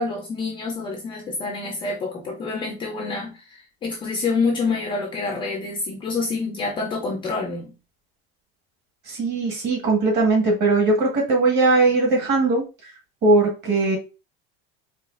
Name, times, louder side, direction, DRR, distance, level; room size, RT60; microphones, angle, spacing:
voice 1, 0.0-7.7, left 4 dB, 15° left, 0.5 m, -27 dB
voice 2, 9.1-12.6 13.2-14.0, right 3 dB, 35° right, 1.6 m, -19 dB
4.8 x 2.4 x 2.5 m
supercardioid pair, 160°, 31 cm